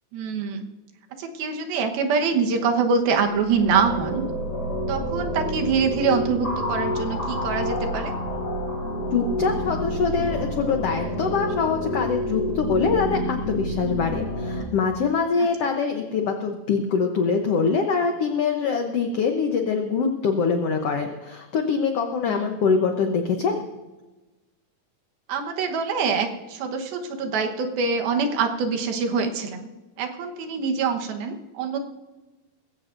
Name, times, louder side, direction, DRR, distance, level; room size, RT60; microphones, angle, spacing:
voice 1, 0.1-0.7 1.2-4.3 4.9-8.1 22.3-22.5 25.3-29.7 30.0-31.8, right 5 dB, 85° right, 4 dB, 3.1 m, -25 dB
sound 1, 3.1-14.6, equal, 35° left, 2.2 m, -28 dB
voice 2, 9.1-23.7, left 5 dB, 85° left, 4 dB, 1.3 m, -24 dB
20.5 x 16.0 x 2.6 m, 1.1 s
omnidirectional pair, 4.2 m